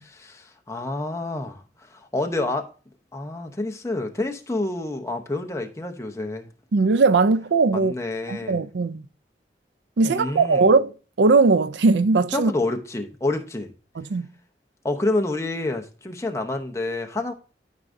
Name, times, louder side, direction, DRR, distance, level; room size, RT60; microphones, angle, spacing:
voice 1, 0.0-2.7 3.1-6.5 7.7-8.6 10.0-10.7 12.3-13.7 14.8-17.3, left 2 dB, 15° left, 0.8 m, -28 dB
voice 2, 6.7-7.9 8.3-9.1 10.0-10.9 11.2-12.5 14.0-14.3, right 3 dB, 80° right, 0.5 m, -19 dB
12.5 x 4.8 x 2.6 m
head